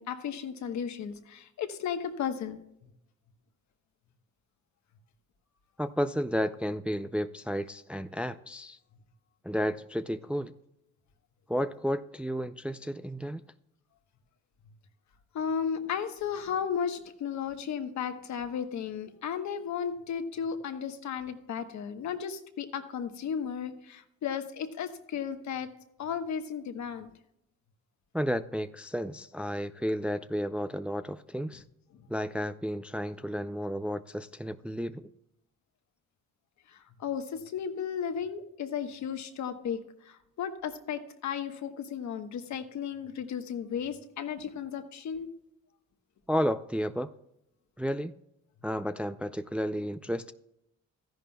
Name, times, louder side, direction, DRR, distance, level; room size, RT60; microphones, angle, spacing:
voice 1, 0.0-2.6 15.3-25.7 26.0-27.1 31.9-32.1 36.7-45.3, left 7 dB, 70° left, 8 dB, 1.2 m, -34 dB
voice 2, 5.8-8.8 9.4-10.5 11.5-13.4 28.1-31.6 32.1-35.1 46.3-47.1 47.8-48.2 48.6-50.3, equal, 5° right, 11 dB, 0.3 m, -32 dB
13.5 x 11.0 x 2.3 m, 0.81 s
cardioid pair, 90°, 30 cm